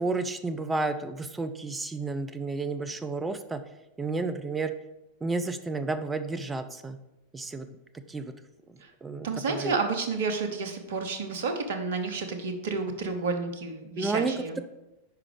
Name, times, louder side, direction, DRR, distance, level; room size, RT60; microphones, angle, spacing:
voice 1, 0.0-3.6 4.0-4.7 5.2-7.0 7.3-7.7 8.1-8.3 9.0-9.3 9.5-9.7 14.0-14.6, right 3 dB, 15° right, 9 dB, 0.5 m, -31 dB
voice 2, 9.2-14.6, right 4 dB, 55° right, 6 dB, 0.9 m, -30 dB
5.8 x 4.9 x 5.0 m, 0.95 s
figure-of-eight pair, 90°, 0 cm